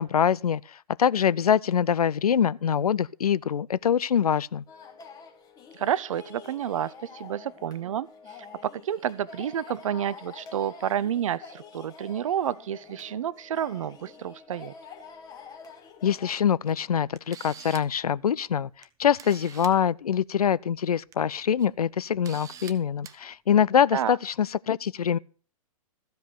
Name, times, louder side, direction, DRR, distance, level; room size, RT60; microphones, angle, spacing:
voice 1, 0.0-4.6 16.0-18.7 19.0-25.2, left 8 dB, 80° left, 0.4 m, -24 dB
sound 1, 4.7-16.4, left 5 dB, 20° left, 1.6 m, -47 dB
voice 2, 5.7-8.1 8.6-14.7 23.9-24.2, right 10 dB, 60° right, 0.6 m, -30 dB
Camera, 16.7-16.8 17.2-18.0 18.8-18.9 19.2-19.8 20.9-21.1 21.6-21.7 22.2-22.7 23.0-23.2, right 8 dB, 15° right, 0.7 m, -44 dB
14.0 x 5.1 x 6.9 m
figure-of-eight pair, 115°, 19 cm